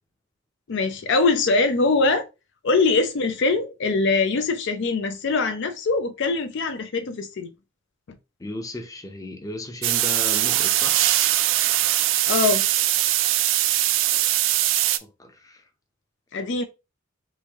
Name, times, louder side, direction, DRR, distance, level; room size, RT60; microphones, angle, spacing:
voice 1, 0.7-2.3 2.6-7.5 12.3-12.6 16.3-16.6, left 3 dB, 60° left, 0.4 m, -22 dB
voice 2, 8.4-11.1 13.6-14.6 15.0-15.6, left 1 dB, 15° left, 0.6 m, -36 dB
sound 1, 9.8-15.0, right 13 dB, 70° right, 0.3 m, -21 dB
3.1 x 2.6 x 3.5 m
head